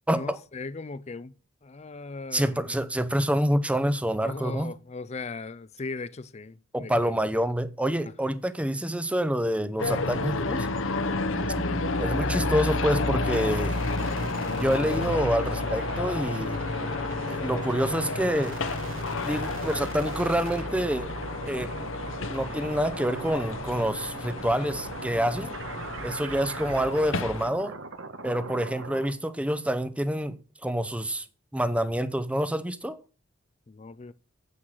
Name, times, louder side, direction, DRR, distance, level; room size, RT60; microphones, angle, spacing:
voice 1, 0.1-1.3 1.6-2.7 4.2-7.2 10.9-11.2 16.8-17.1 33.7-34.1, left 3 dB, 30° left, 0.5 m, -38 dB
voice 2, 2.3-4.7 6.7-10.7 12.0-13.8 14.6-16.6 17.3-18.6 19.2-21.1 21.5-21.7 22.3-25.5 26.0-27.8 28.2-31.3 31.5-33.0, equal, 5° right, 0.7 m, -27 dB
sound 1, 9.8-27.5, left 3 dB, 70° left, 1.0 m, -31 dB
sound 2, 11.3-29.1, right 3 dB, 70° right, 1.3 m, -40 dB
9.8 x 7.9 x 6.5 m
head